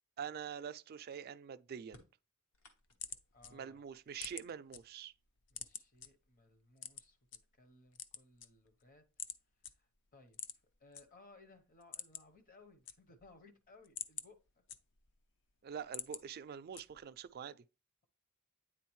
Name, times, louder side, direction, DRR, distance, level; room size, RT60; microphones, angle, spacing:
voice 1, 0.2-2.0 3.5-5.1 15.6-17.6, right 7 dB, 45° right, 0.3 m, -45 dB
sound 1, 1.8-3.3 3.9-5.0 6.1-6.2 7.1-7.2 7.7-8.2, left 1 dB, 75° left, 1.3 m, -65 dB
sound 2, 2.5-4.8 5.2-6.1 6.8-7.4 7.8-8.8 9.2-9.4 9.6-9.7 10.3-11.0 11.4-11.5 11.8-12.4 12.7-13.3 13.7-15.2 15.6-16.2 16.7-17.2, left 8 dB, 60° left, 0.5 m, -46 dB
voice 2, 3.3-3.8 5.5-9.1 9.7-10.4 10.8-14.6, left 3 dB, 40° left, 0.9 m, -62 dB
9.2 x 3.7 x 3.1 m
head